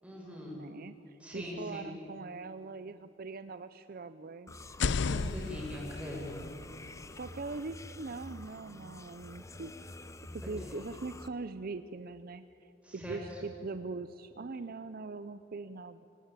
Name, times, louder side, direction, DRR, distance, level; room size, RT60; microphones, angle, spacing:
voice 1, 0.0-0.6 1.2-1.9 5.0-6.5 10.4-10.7 12.8-13.2, left 1 dB, 5° right, -3 dB, 6.7 m, -42 dB
voice 2, 0.5-4.6 7.1-9.7 10.3-16.0, right 3 dB, 50° right, 12 dB, 0.6 m, -42 dB
sound 1, 4.5-11.3, left 2 dB, 15° left, 0.7 m, -48 dB
sound 2, 4.6-8.5, left 4 dB, 65° left, 0.5 m, -36 dB
24.5 x 18.5 x 9.0 m, 3.0 s
head